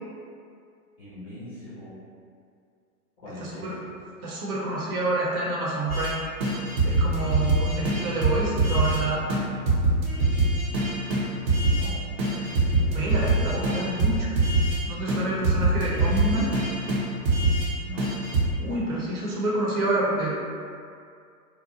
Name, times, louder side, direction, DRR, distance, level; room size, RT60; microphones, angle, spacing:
voice 1, 1.0-2.0 3.2-4.0 11.6-13.0 17.8-18.1, left 1 dB, 15° left, -13 dB, 0.3 m, -42 dB
voice 2, 3.4-3.8 4.2-6.2 6.8-9.2 12.6-14.3 14.9-16.5 18.6-20.3, right 2 dB, 70° right, -5 dB, 0.8 m, -28 dB
sound 1, 5.9-6.1 6.4-9.0 9.3-9.4 9.7-11.9 12.2-14.8 15.1-17.7 18.0-18.5, right 2 dB, 45° right, 0.6 m, -24 dB
2.6 x 2.0 x 2.7 m, 2.3 s
hypercardioid pair, 120°, 45 cm